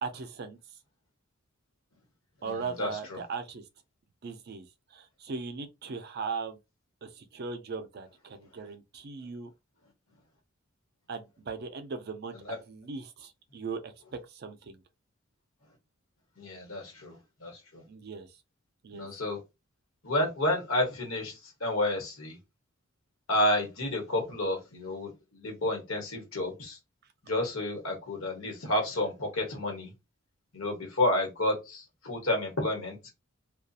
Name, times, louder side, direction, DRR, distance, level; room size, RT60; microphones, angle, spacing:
voice 1, 0.0-0.6 2.4-3.6 4.2-6.6 7.0-9.5 11.1-13.9 14.3-14.8 17.9-18.3 18.8-19.1, right 4 dB, 50° right, 0.4 m, -38 dB
voice 2, 2.4-3.2 12.5-12.6 16.4-17.8 18.9-19.4 20.0-22.4 23.3-26.8 27.2-29.9 30.5-33.1, left 1 dB, 80° left, 1.1 m, -30 dB
2.6 x 2.3 x 2.3 m
head